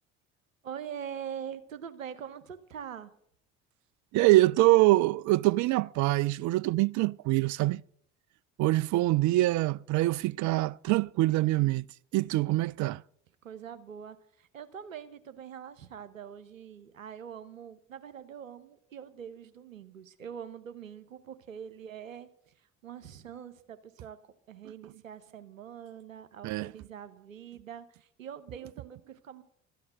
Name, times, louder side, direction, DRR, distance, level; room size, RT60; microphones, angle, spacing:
voice 1, 0.6-3.1 13.4-24.2 24.5-29.4, right 8 dB, 90° right, 0.8 m, -44 dB
voice 2, 4.1-7.8 8.6-11.8 12.1-13.0 26.4-26.7, right 18 dB, 50° right, 0.5 m, -24 dB
13.5 x 8.6 x 7.7 m
figure-of-eight pair, 55°, 39 cm